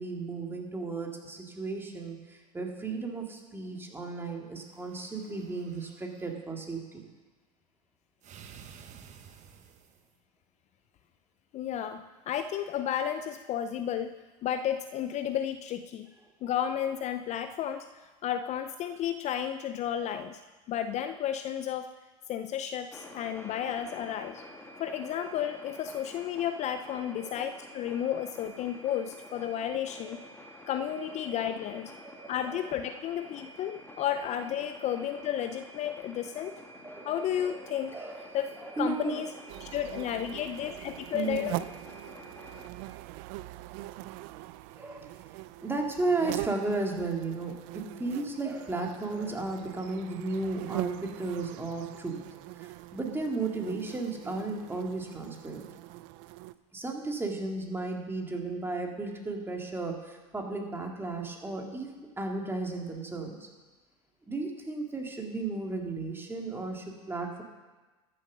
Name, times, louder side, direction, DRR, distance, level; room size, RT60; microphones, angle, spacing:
voice 1, 0.0-7.0 16.4-16.5 27.1-27.5 30.0-30.2 32.0-32.6 36.8-38.3 38.6-39.2 41.1-41.5 44.8-45.1 45.6-47.6 48.0-52.2 52.9-55.7 56.7-61.9 62.2-63.5 64.3-67.4, right 3 dB, 10° right, 2 dB, 2.2 m, -34 dB
sound 1, 4.6-6.4 8.2-10.1, right 7 dB, 40° right, 1.2 m, -52 dB
voice 2, 11.5-14.1 14.4-16.1 16.4-20.4 20.7-21.9 22.3-24.4 24.8-30.2 30.7-31.9 32.3-36.5 37.0-38.0 38.3-38.5 38.8-39.3 39.6-41.6, left 10 dB, 40° left, 10 dB, 0.5 m, -32 dB
sound 2, 22.9-42.7, left 1 dB, 10° left, 1.8 m, -49 dB
sound 3, 39.5-56.5, right 17 dB, 55° right, 0.5 m, -42 dB
13.0 x 7.6 x 6.2 m, 1.2 s
hypercardioid pair, 100°, 19 cm